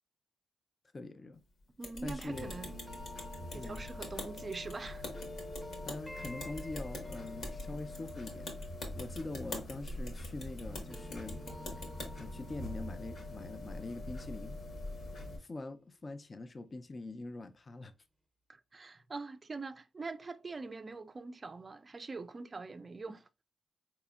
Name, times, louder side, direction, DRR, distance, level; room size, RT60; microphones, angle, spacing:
voice 1, 0.9-1.4 2.0-2.5 3.5-3.9 5.9-8.5 8.9-11.4 12.2-14.6 15.4-17.9, left 2 dB, 35° left, 0.4 m, -44 dB
sound 1, 1.8-12.1, left 2 dB, 80° left, 1.3 m, -45 dB
voice 2, 1.8-2.7 3.5-5.1 18.5-23.3, right 3 dB, 35° right, 0.3 m, -43 dB
sound 2, 2.3-15.4, left 1 dB, 60° left, 1.0 m, -45 dB
sound 3, 2.3-10.4 10.7-15.6, equal, 5° left, 0.7 m, -52 dB
4.1 x 2.9 x 2.3 m
cardioid pair, 75°, 0 cm